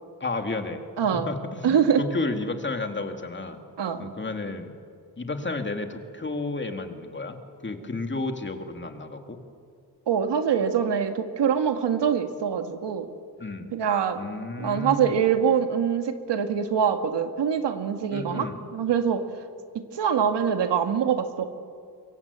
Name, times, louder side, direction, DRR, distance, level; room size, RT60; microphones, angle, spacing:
voice 1, 0.2-0.8 1.3-3.6 4.0-4.7 5.2-9.4 13.4-13.7 14.2-15.2 18.1-18.6, left 3 dB, 25° left, 5 dB, 2.4 m, -32 dB
voice 2, 1.0-1.3 1.6-2.0 3.8-4.1 10.1-13.1 13.7-14.2 14.6-19.2 19.9-21.5, right 7 dB, 80° right, 7 dB, 2.0 m, -24 dB
25.0 x 23.0 x 8.3 m, 2.2 s
cardioid pair, 105°, 41 cm